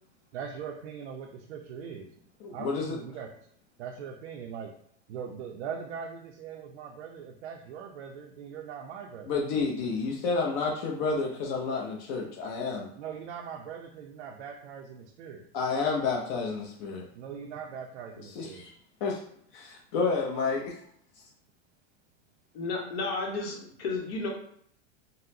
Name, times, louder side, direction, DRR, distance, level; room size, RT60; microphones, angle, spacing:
voice 1, 0.3-2.1 2.5-3.3 3.8-4.7 5.1-9.3 13.0-15.5 17.1-18.7, right 7 dB, 85° right, 2 dB, 0.5 m, -41 dB
voice 2, 2.4-3.0 9.3-12.9 15.5-17.0 18.3-18.7 19.0-19.2 19.5-20.7, left 4 dB, 45° left, -1 dB, 0.6 m, -30 dB
voice 3, 22.5-24.3, left 3 dB, 65° left, 0 dB, 1.1 m, -32 dB
3.9 x 2.0 x 2.7 m, 0.66 s
supercardioid pair, 130°, 33 cm